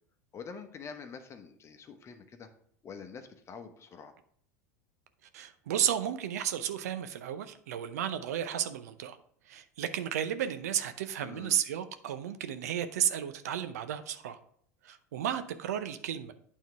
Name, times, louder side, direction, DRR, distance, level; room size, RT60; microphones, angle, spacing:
voice 1, 0.3-2.5 2.8-4.1 11.2-11.6, left 6 dB, 30° left, 7 dB, 1.0 m, -46 dB
voice 2, 5.3-9.2 9.5-14.4 14.8-16.3, right 10 dB, 75° right, 10 dB, 0.6 m, -33 dB
9.1 x 3.7 x 4.7 m, 0.64 s
hypercardioid pair, 85°, 9 cm